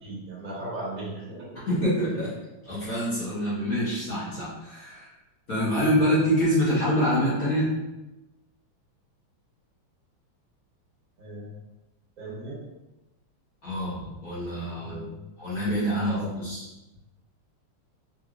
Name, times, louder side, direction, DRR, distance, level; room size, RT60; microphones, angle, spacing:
voice 1, 0.0-1.6 2.1-2.2 11.2-11.5 12.2-12.6 14.6-15.3 16.0-16.3, right 1 dB, 45° right, -6 dB, 1.4 m, -38 dB
voice 2, 1.7-2.3 2.7-5.1 5.5-7.7 13.6-15.0 15.4-16.6, equal, 45° left, -11 dB, 1.7 m, -26 dB
4.8 x 2.6 x 2.4 m, 1.0 s
omnidirectional pair, 2.3 m